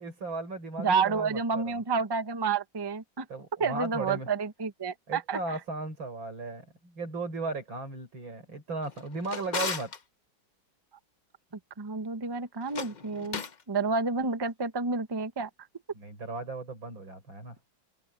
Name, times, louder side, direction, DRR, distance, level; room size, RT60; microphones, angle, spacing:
voice 1, 0.0-1.8 3.3-4.3 5.1-9.9 15.9-17.6, right 3 dB, 85° right, 7.0 m, -36 dB
voice 2, 0.8-3.2 3.6-5.6 11.8-13.4 13.7-15.5, right 4 dB, 20° right, 0.7 m, -29 dB
Drawer open or close, 8.8-10.0 12.6-13.6, left 5 dB, 55° left, 0.4 m, -36 dB
omnidirectional pair, 2.1 m